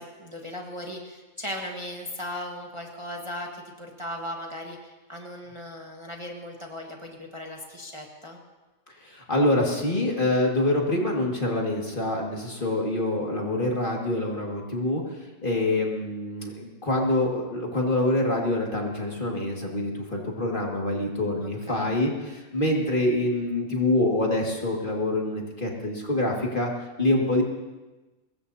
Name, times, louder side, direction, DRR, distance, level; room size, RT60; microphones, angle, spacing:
voice 1, 0.0-8.4 21.4-21.9, left 1 dB, 20° right, 0 dB, 1.6 m, -37 dB
voice 2, 9.0-15.0 15.4-26.7 27.0-27.4, left 1 dB, 35° left, -1 dB, 2.2 m, -25 dB
24.0 x 21.0 x 2.8 m, 1.2 s
omnidirectional pair, 1.6 m